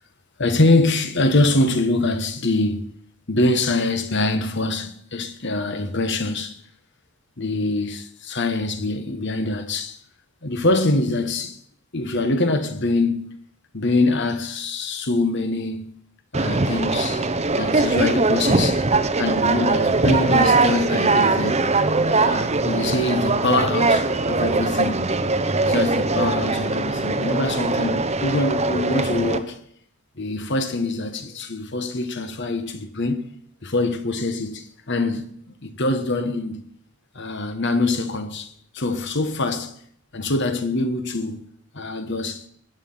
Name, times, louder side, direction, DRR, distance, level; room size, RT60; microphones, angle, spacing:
voice 1, 0.4-2.9 3.3-6.6 7.4-10.0 10.4-11.6 11.9-13.4 13.7-16.0 16.3-17.3 17.5-18.8 19.1-25.0 25.6-29.6 30.2-33.2 33.6-35.2 35.6-36.6 37.1-39.7 40.1-41.5 41.7-42.5, left 2 dB, 55° left, 1.5 m, -24 dB
Conversation, 16.3-29.4, right 3 dB, 30° right, 0.8 m, -21 dB
21.0 x 8.9 x 5.7 m
head